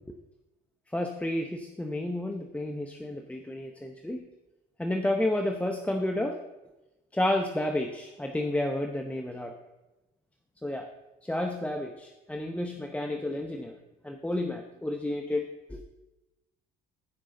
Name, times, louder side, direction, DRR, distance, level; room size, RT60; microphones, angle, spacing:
voice 1, 0.9-4.2 4.8-6.4 7.1-9.5 10.6-10.9 11.2-13.7 14.0-15.8, left 1 dB, 5° left, 3 dB, 0.8 m, -31 dB
15.5 x 5.3 x 3.9 m, 1.0 s
cardioid pair, 95°, 20 cm